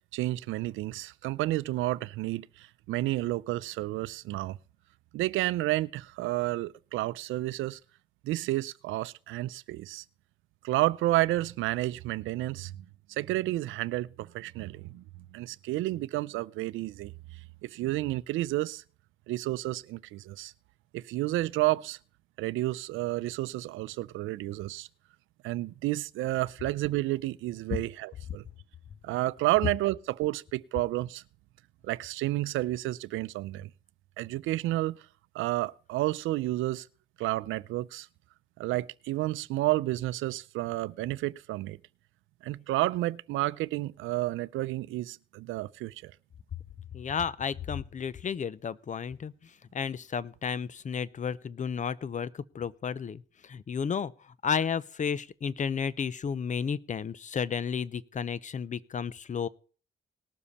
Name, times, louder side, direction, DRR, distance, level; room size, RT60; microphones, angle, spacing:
voice 1, 0.1-4.6 5.1-7.8 8.2-10.0 10.6-15.0 15.3-17.1 17.6-18.8 19.3-20.5 20.9-22.0 22.4-24.9 25.4-28.4 29.0-31.2 31.8-33.7 34.2-35.0 35.3-36.9 37.2-38.1 38.6-41.8 42.4-46.1, right 17 dB, 90° right, 0.5 m, -31 dB
voice 2, 46.9-54.1 54.4-59.5, left 6 dB, 40° left, 0.7 m, -32 dB
19.0 x 7.1 x 4.2 m
cardioid pair, 90°, 20 cm